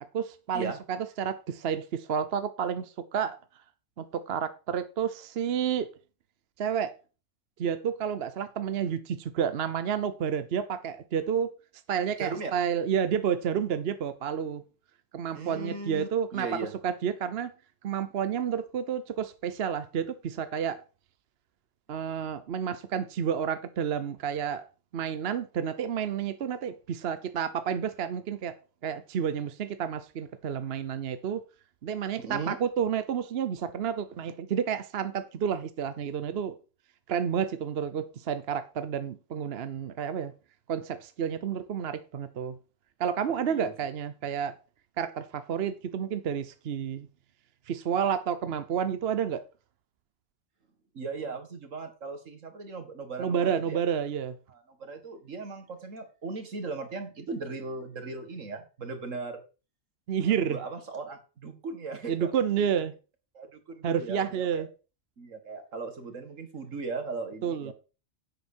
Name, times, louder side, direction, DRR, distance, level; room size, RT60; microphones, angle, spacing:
voice 1, 0.1-3.4 4.0-5.9 6.6-6.9 7.6-11.5 11.9-14.6 15.1-17.5 17.8-20.8 21.9-24.7 24.9-28.6 28.8-31.4 31.8-36.6 37.1-40.3 40.7-42.6 43.0-44.6 45.0-47.1 47.7-49.4 53.2-54.4 60.1-60.6 62.1-62.9 63.8-64.7 67.4-67.7, right 8 dB, 55° right, 0.9 m, -30 dB
voice 2, 12.2-12.5 15.3-16.7 32.2-32.6 43.5-43.7 50.9-53.8 54.5-59.4 60.3-62.3 63.3-64.6 65.2-67.7, right 4 dB, 70° right, 2.2 m, -38 dB
10.5 x 8.0 x 4.3 m
omnidirectional pair, 1.4 m